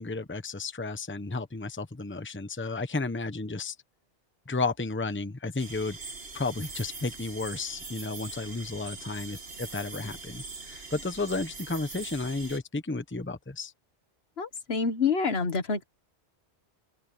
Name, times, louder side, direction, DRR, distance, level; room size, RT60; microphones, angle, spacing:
voice 1, 0.0-3.7 4.5-6.0 6.3-13.7, left 3 dB, 10° left, 0.9 m, -33 dB
sound 1, 5.6-12.6, right 3 dB, 65° right, 2.1 m, -42 dB
voice 2, 14.4-15.8, left 5 dB, 65° left, 1.6 m, -27 dB
open air
omnidirectional pair, 1.1 m